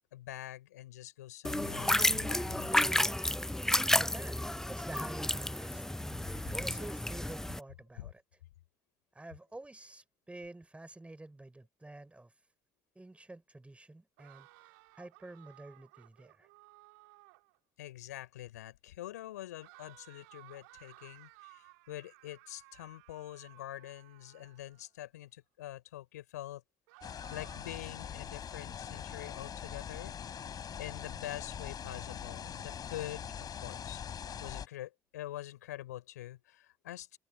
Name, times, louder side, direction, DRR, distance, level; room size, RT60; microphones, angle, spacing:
voice 1, 0.1-2.8 8.0-8.1 17.8-26.6 27.0-30.2 30.8-37.2, left 14 dB, 80° left, 6.0 m, -45 dB
sound 1, 1.4-7.6, left 1 dB, 5° left, 0.5 m, -31 dB
voice 2, 4.0-4.4 4.7-5.8 6.5-8.2 9.1-12.3 12.9-14.5 15.0-16.5, right 2 dB, 15° right, 6.0 m, -48 dB
sound 2, 14.2-17.6 19.6-24.9 26.9-27.9, right 28 dB, 75° right, 4.3 m, -58 dB
sound 3, 27.0-34.7, left 8 dB, 45° left, 5.6 m, -43 dB
figure-of-eight pair, 50°, 9 cm